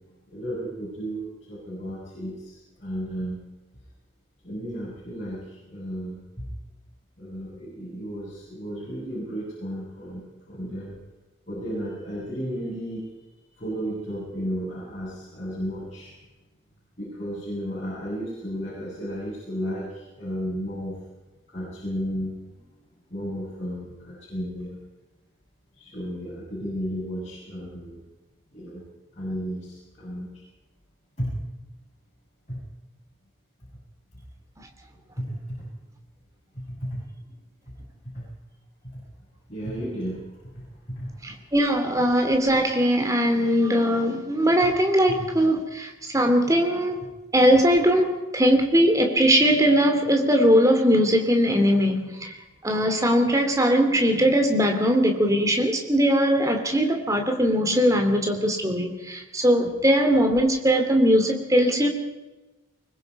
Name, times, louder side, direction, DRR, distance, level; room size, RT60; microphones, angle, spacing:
voice 1, 0.3-3.4 4.4-6.5 7.2-11.0 11.5-13.1 13.5-16.2 17.0-20.9 21.5-22.8 23.1-24.8 25.8-28.0 28.5-28.8 29.1-30.3 31.2-31.3 32.5-32.6 34.2-34.3 35.1-35.7 36.5-37.0 38.1-38.3 38.9-39.0 39.5-41.3 45.2-45.3 59.6-59.7, equal, 35° left, -8 dB, 7.9 m, -33 dB
voice 2, 41.2-47.1 47.3-52.4 52.6-61.9, equal, 15° right, 4 dB, 2.9 m, -20 dB
24.0 x 21.0 x 5.5 m, 1.1 s
head